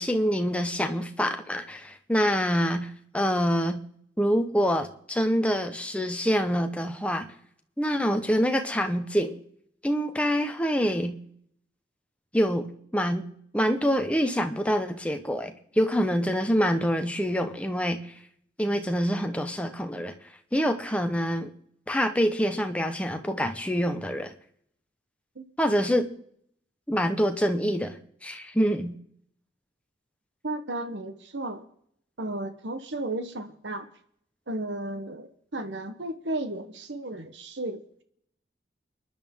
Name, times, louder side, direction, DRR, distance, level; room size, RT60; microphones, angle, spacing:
voice 1, 0.0-3.8 4.2-7.3 7.8-9.4 9.8-11.2 12.3-12.7 12.9-13.3 13.5-18.1 18.6-20.1 20.5-21.5 21.9-24.3 25.6-26.1 26.9-28.9, equal, 5° left, 6 dB, 1.0 m, -26 dB
voice 2, 30.4-31.6 32.2-33.9 34.5-37.8, right 1 dB, 80° right, 8 dB, 1.2 m, -34 dB
29.5 x 10.5 x 3.7 m, 0.71 s
head